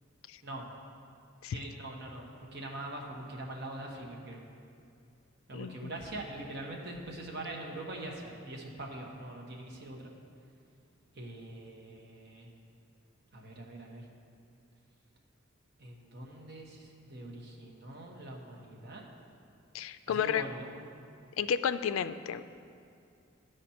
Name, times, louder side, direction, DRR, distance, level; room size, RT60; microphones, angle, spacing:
voice 1, 1.5-4.5 5.5-10.1 11.1-12.5 13.3-14.0 15.8-19.0 20.1-20.6, right 1 dB, 55° right, 0 dB, 1.1 m, -43 dB
voice 2, 5.5-5.9 19.7-20.4 21.4-22.5, left 8 dB, 85° left, 12 dB, 0.3 m, -32 dB
12.5 x 5.0 x 4.3 m, 2.5 s
head